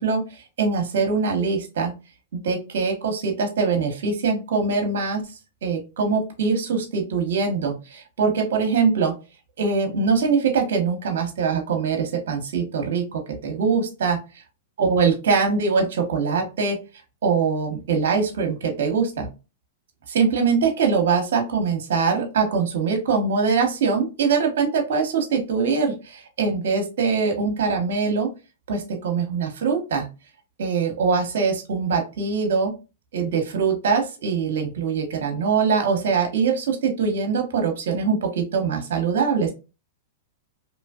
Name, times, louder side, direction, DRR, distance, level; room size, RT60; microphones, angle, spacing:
voice 1, 0.0-1.9 2.4-5.2 5.6-9.1 9.6-14.2 14.8-16.8 17.2-19.3 20.1-28.3 28.7-30.1 30.6-32.7 33.1-39.5, right 5 dB, 70° right, 4 dB, 0.8 m, -23 dB
2.8 x 2.4 x 2.3 m, 0.29 s
hypercardioid pair, 120°, 0 cm